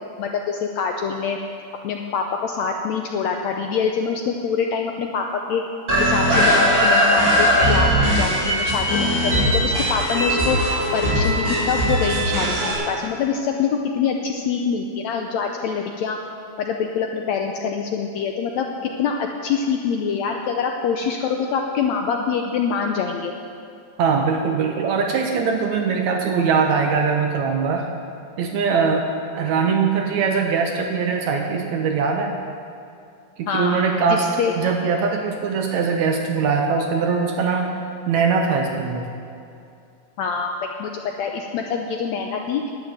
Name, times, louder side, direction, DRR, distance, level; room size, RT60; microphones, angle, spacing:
voice 1, 0.2-1.4 1.8-5.6 6.0-10.6 10.9-16.2 16.6-23.3 33.5-33.8 34.1-34.5 40.2-40.5 40.8-42.6, left 6 dB, 75° left, 3 dB, 1.7 m, -25 dB
sound 1, 5.9-12.7, equal, 25° right, 4.0 m, -19 dB
voice 2, 24.0-27.9 28.4-32.3 33.4-37.7 38.1-39.1, right 5 dB, 70° right, 3 dB, 2.0 m, -21 dB
11.0 x 8.2 x 9.2 m, 2.5 s
omnidirectional pair, 3.8 m